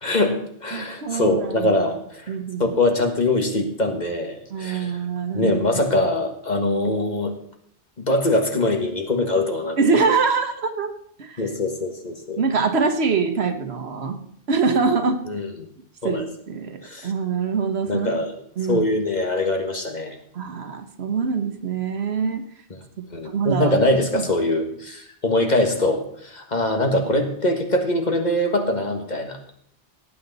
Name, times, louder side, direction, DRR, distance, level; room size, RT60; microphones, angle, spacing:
voice 1, 0.0-5.0 5.3-7.3 8.0-9.8 11.4-12.4 15.3-15.7 16.0-16.3 16.8-17.1 17.9-18.4 18.7-20.2 23.1-29.4, left 1 dB, 40° left, 4 dB, 1.7 m, -23 dB
voice 2, 0.7-1.9 2.3-2.8 4.5-5.6 9.8-10.9 11.2-11.4 12.4-15.2 16.0-18.1 18.6-18.9 20.3-22.4 23.2-23.7 24.1-24.2, right 5 dB, 75° right, 8 dB, 1.4 m, -24 dB
18.0 x 8.2 x 4.1 m, 0.67 s
omnidirectional pair, 1.1 m